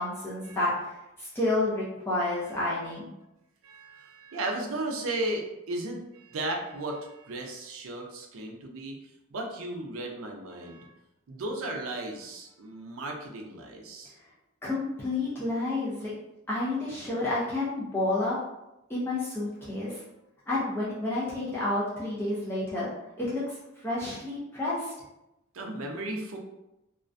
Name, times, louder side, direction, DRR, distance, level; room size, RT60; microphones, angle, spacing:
voice 1, 0.0-3.1 14.6-16.1 16.5-18.4 18.9-20.0 20.5-22.9 23.2-23.4 23.8-24.9, left 2 dB, 10° left, -8 dB, 0.5 m, -30 dB
voice 2, 3.6-9.0 9.3-10.9 11.3-14.1 25.5-26.4, right 2 dB, 85° right, 2 dB, 0.5 m, -35 dB
2.4 x 2.1 x 2.5 m, 0.91 s
head